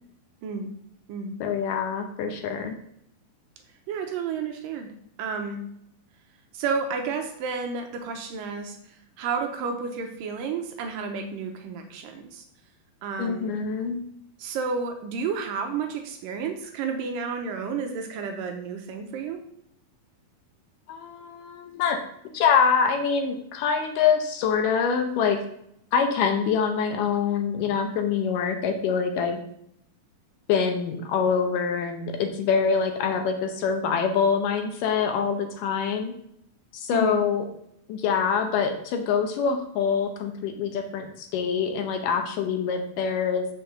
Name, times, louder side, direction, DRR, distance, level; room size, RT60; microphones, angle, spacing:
voice 1, 0.4-0.7 1.1-1.4 3.9-4.9 5.2-5.6 6.5-8.8 9.2-12.4 13.0-13.5 14.4-19.4 36.9-37.2, right 5 dB, 75° right, 5 dB, 2.3 m, -31 dB
voice 2, 1.4-2.8 13.2-14.0 20.9-22.0 22.3-25.4 25.9-29.4 30.5-36.1 36.7-37.5 37.9-43.5, left 6 dB, 75° left, 5 dB, 2.2 m, -25 dB
6.0 x 5.3 x 6.5 m, 0.72 s
omnidirectional pair, 4.2 m